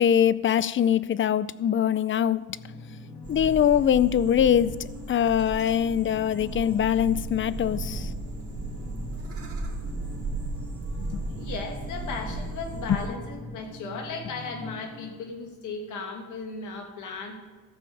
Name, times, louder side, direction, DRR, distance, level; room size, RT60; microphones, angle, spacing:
voice 1, 0.0-2.4 3.3-4.8 5.1-8.1 11.0-11.2 12.9-13.0, left 9 dB, 40° left, 18 dB, 0.5 m, -23 dB
sound 1, 2.5-15.1, left 2 dB, 60° left, 2.8 m, -43 dB
sound 2, 3.2-13.1, right 2 dB, 50° right, 2.9 m, -35 dB
voice 2, 11.3-17.4, left 4 dB, 80° left, 2 dB, 2.3 m, -36 dB
14.5 x 5.1 x 7.1 m, 1.4 s
cardioid pair, 90°, 30 cm